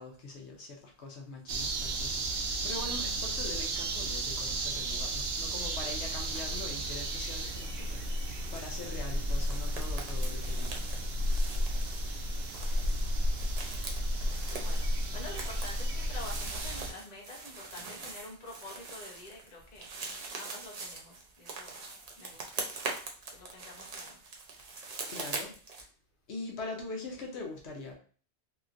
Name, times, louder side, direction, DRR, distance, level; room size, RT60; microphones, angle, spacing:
voice 1, 0.0-13.2 24.7-25.5 25.8-25.9 26.3-27.9, left 3 dB, 80° left, 0 dB, 1.0 m, -44 dB
sound 1, 1.5-16.9, right 1 dB, 70° right, 0.8 m, -33 dB
sound 2, 6.3-6.7 7.0-25.8, right 3 dB, 45° right, 0.6 m, -43 dB
voice 2, 14.5-14.9 15.1-19.9 20.3-21.8 22.2-22.7 23.3-24.2, left 2 dB, 40° left, -2 dB, 1.0 m, -47 dB
3.1 x 2.8 x 2.4 m, 0.41 s
omnidirectional pair, 1.1 m